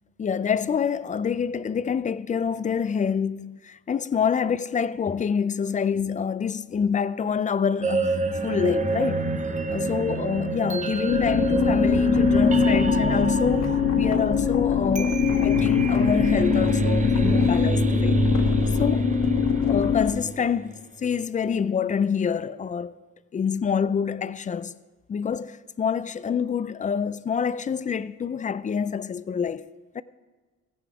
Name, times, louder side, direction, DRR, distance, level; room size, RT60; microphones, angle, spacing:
voice 1, 0.2-9.2 9.7-18.2 18.8-19.1 19.7-23.0 23.3-24.8 25.1-29.7 29.9-30.0, left 7 dB, 25° left, 0.4 m, -26 dB
sound 1, 7.8-20.8, right 2 dB, 25° right, 0.7 m, -27 dB
sound 2, 11.1-20.1, left 6 dB, 65° left, 1.2 m, -23 dB
15.5 x 6.9 x 4.8 m
cardioid pair, 90°, 30 cm